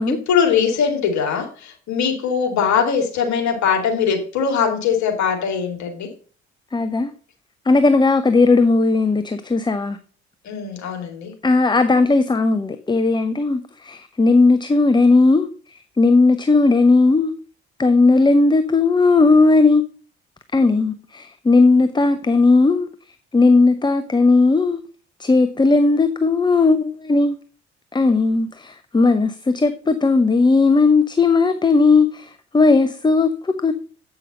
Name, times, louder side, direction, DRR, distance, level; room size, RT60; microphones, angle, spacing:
voice 1, 0.1-6.1 10.4-11.3, left 7 dB, 55° left, 2.6 m, -21 dB
voice 2, 6.7-7.1 7.7-10.0 11.4-17.3 17.8-19.8 20.5-22.9 23.3-24.8 25.2-27.4 27.9-33.7, left 3 dB, 15° left, 0.7 m, -16 dB
8.3 x 5.8 x 5.3 m
figure-of-eight pair, 50°, 33 cm